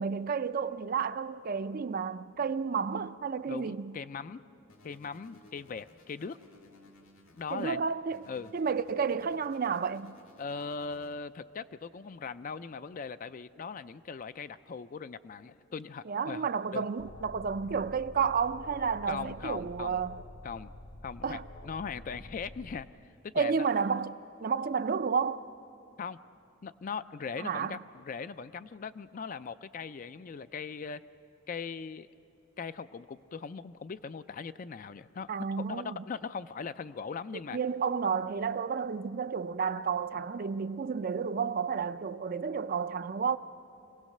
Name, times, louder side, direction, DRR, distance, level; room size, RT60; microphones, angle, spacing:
voice 1, 0.0-3.9 7.5-8.2 8.5-10.2 16.1-20.2 21.2-21.5 23.4-25.5 27.4-27.8 35.3-36.0 37.5-43.4, right 6 dB, 45° right, 0.4 m, -31 dB
voice 2, 3.5-4.4 4.8-6.4 7.3-7.9 8.3-8.5 10.4-16.9 19.1-20.0 20.4-20.7 21.0-22.9 23.2-23.6 26.0-26.2 26.6-31.0 31.5-32.1 32.6-35.3 35.6-37.6, left 5 dB, 40° left, 0.4 m, -40 dB
sound 1, 4.7-7.7 8.1-11.1, left 1 dB, 85° left, 2.3 m, -58 dB
Alarm, 17.0-22.8, left 1 dB, 60° left, 1.6 m, -48 dB
25.5 x 17.0 x 6.5 m
head